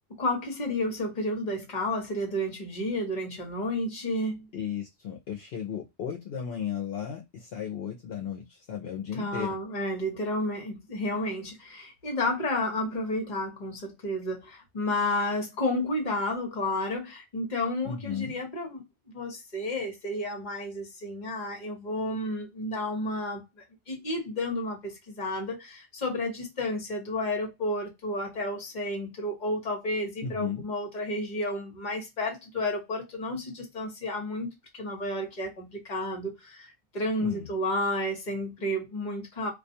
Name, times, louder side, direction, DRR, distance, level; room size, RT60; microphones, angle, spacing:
voice 1, 0.2-4.5 9.1-18.8 19.1-23.4 23.9-34.5 34.7-39.5, left 1 dB, 45° left, 1.0 m, -31 dB
voice 2, 4.5-9.6 17.8-18.4 30.2-30.7 37.2-37.5, left 8 dB, 70° left, 0.8 m, -35 dB
2.3 x 2.3 x 2.6 m
omnidirectional pair, 1.1 m